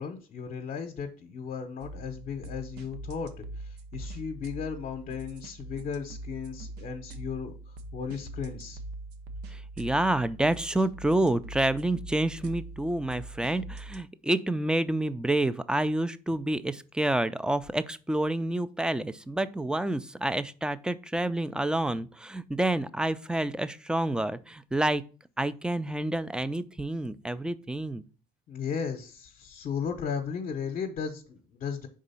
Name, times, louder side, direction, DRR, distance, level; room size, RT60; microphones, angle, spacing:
voice 1, 0.0-8.8 28.5-31.9, left 6 dB, 55° left, 5 dB, 0.8 m, -35 dB
sound 1, 1.8-14.0, right 2 dB, 80° right, 0.8 m, -43 dB
voice 2, 9.5-25.0 25.4-28.0, right 1 dB, 5° right, 15 dB, 0.3 m, -28 dB
5.0 x 3.7 x 5.5 m, 0.36 s
cardioid pair, 110°, 17 cm